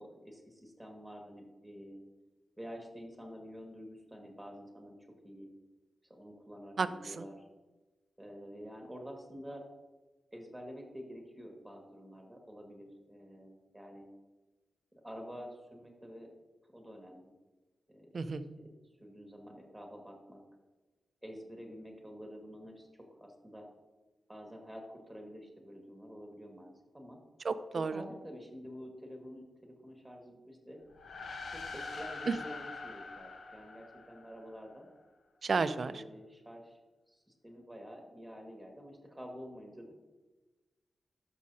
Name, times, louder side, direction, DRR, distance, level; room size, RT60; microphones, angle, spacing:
voice 1, 0.0-2.0 2.6-5.0 5.2-5.5 6.1-7.4 8.2-9.6 10.3-14.1 14.9-16.3 16.7-17.3 17.9-18.2 18.6-18.7 19.0-20.4 21.2-23.7 24.3-27.2 27.9-30.8 31.5-34.9 35.8-36.8 37.1-39.9, equal, 5° right, 1 dB, 1.8 m, -48 dB
voice 2, 6.8-7.2 18.1-18.5 27.4-28.0 32.3-32.4 35.4-36.0, right 4 dB, 50° right, 12 dB, 0.5 m, -32 dB
sound 1, 30.9-34.6, left 3 dB, 65° left, 1.0 m, -44 dB
11.5 x 6.3 x 2.8 m, 1.2 s
wide cardioid pair, 95°, 0 cm